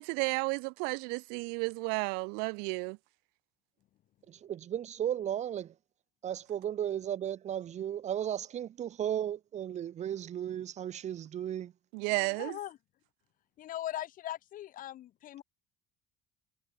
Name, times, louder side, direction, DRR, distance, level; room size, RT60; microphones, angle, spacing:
voice 1, 0.0-3.0 11.9-12.6, right 37 dB, 85° right, 0.9 m, -32 dB
voice 2, 4.3-5.7 6.2-11.7, right 10 dB, 45° right, 1.2 m, -35 dB
voice 3, 12.2-12.8 13.6-15.4, left 13 dB, 60° left, 3.6 m, -40 dB
supercardioid pair, 100°, 16 cm